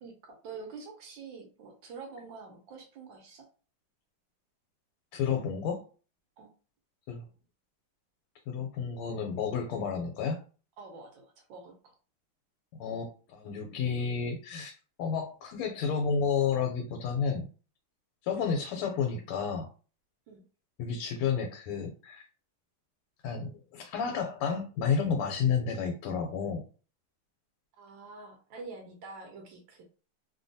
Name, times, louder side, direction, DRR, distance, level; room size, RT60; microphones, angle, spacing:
voice 1, 0.0-3.5 6.4-6.5 10.8-11.9 20.3-20.4 27.8-29.8, right 4 dB, 70° right, 3 dB, 1.3 m, -46 dB
voice 2, 5.1-5.8 7.1-7.2 8.5-10.4 12.8-14.7 15.0-17.5 18.2-19.7 20.8-22.2 23.2-26.6, left 6 dB, 90° left, 3 dB, 1.5 m, -31 dB
3.4 x 2.2 x 2.6 m, 0.37 s
omnidirectional pair, 2.4 m